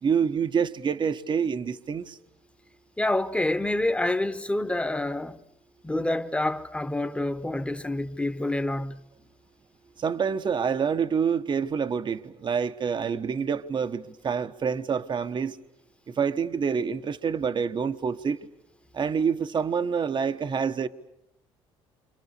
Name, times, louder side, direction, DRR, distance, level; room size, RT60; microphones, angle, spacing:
voice 1, 0.0-2.2 10.0-15.6 16.1-18.4 18.9-20.9, right 6 dB, 45° right, 1.2 m, -27 dB
voice 2, 3.0-5.4 5.8-9.0, left 1 dB, 10° left, 1.4 m, -27 dB
29.0 x 26.0 x 6.8 m
supercardioid pair, 75°, 12 cm